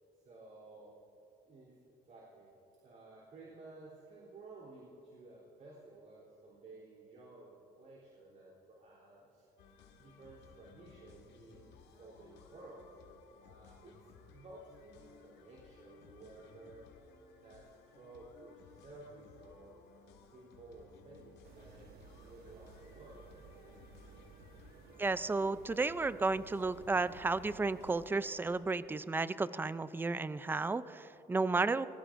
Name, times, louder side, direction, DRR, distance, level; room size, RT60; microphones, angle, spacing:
voice 1, 0.1-0.9 1.5-1.8 2.1-2.5 2.8-9.5 10.0-12.8 13.4-16.9 17.3-19.8 20.2-23.4 23.7-23.8, right 2 dB, 50° right, -5 dB, 3.5 m, -55 dB
sound 1, 9.6-28.8, left 6 dB, 85° left, 1.7 m, -60 dB
sound 2, 21.4-28.1, right 6 dB, 70° right, 1.2 m, -57 dB
voice 2, 25.0-31.9, right 3 dB, 10° right, 15 dB, 0.4 m, -33 dB
25.5 x 20.0 x 2.6 m, 2.9 s
cardioid pair, 110°, 17 cm